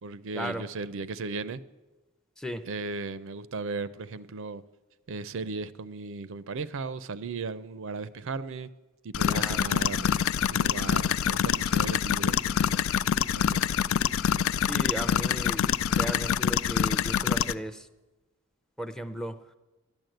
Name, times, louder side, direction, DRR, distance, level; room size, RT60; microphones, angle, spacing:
voice 1, 0.0-1.6 2.7-4.6 5.1-8.7 9.0-10.1 10.5-12.8 13.3-13.6, right 3 dB, 65° right, 15 dB, 0.5 m, -36 dB
sound 1, 9.1-17.5, left 8 dB, 70° left, 0.4 m, -26 dB
voice 2, 9.3-9.6 14.6-17.9 18.8-19.4, equal, 5° left, 11 dB, 0.6 m, -36 dB
12.0 x 10.5 x 7.8 m, 1.1 s
head